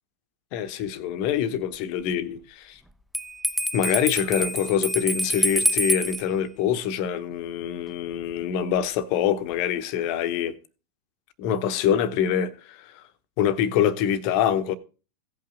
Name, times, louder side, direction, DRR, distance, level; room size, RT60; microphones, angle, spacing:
voice 1, 0.5-2.8 3.7-10.6 11.4-13.0 13.4-14.7, left 9 dB, 45° left, 0.9 m, -25 dB
Bell, 3.1-6.2, equal, ahead, 0.6 m, -26 dB
16.5 x 5.7 x 3.7 m
figure-of-eight pair, 90°, 0 cm